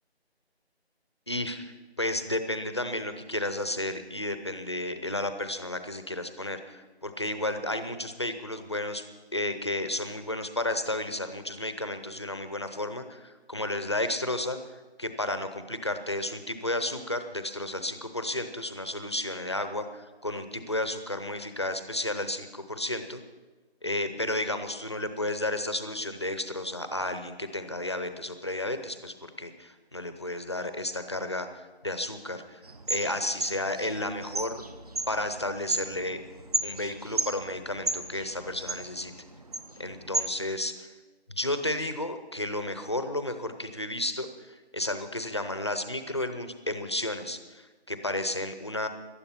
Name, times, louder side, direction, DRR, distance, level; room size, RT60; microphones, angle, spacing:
voice 1, 1.3-9.0 9.3-23.2 23.8-32.6 32.9-34.6 35.1-36.2 36.6-39.1 39.8-40.7 41.3-48.9, left 1 dB, 25° left, 9 dB, 0.7 m, -32 dB
sound 1, 32.6-40.2, right 2 dB, 35° right, 0.9 m, -34 dB
18.5 x 12.5 x 5.7 m, 1.3 s
figure-of-eight pair, 170°, 33 cm